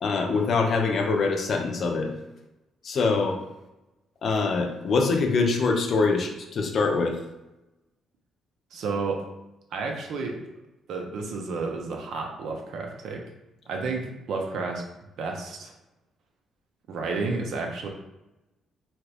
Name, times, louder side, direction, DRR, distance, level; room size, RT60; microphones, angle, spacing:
voice 1, 0.0-2.1 2.8-3.4 4.2-7.2, left 4 dB, 55° left, 3 dB, 0.5 m, -24 dB
voice 2, 8.7-9.3 9.7-10.5 10.9-13.2 13.7-14.8 15.2-15.7 16.9-17.9, right 4 dB, 75° right, 2 dB, 0.6 m, -31 dB
2.9 x 2.4 x 3.2 m, 0.95 s
cardioid pair, 90°, 0 cm